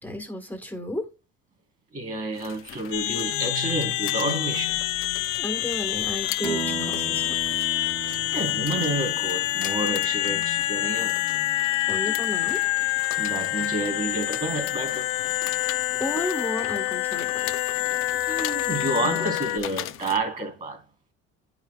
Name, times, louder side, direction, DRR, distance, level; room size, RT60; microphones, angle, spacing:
voice 1, 0.0-1.1 5.4-7.4 11.9-12.6 16.0-17.5, equal, 5° left, 1.5 m, -32 dB
voice 2, 1.9-4.8 8.3-11.2 13.2-15.1 18.3-20.8, right 2 dB, 25° right, 3.5 m, -29 dB
sound 1, 2.3-20.2, left 12 dB, 45° left, 0.6 m, -41 dB
sound 2, 2.9-19.6, left 17 dB, 85° left, 0.7 m, -27 dB
sound 3, 6.4-10.7, right 5 dB, 70° right, 3.2 m, -37 dB
10.5 x 5.8 x 2.3 m
cardioid pair, 125°, 29 cm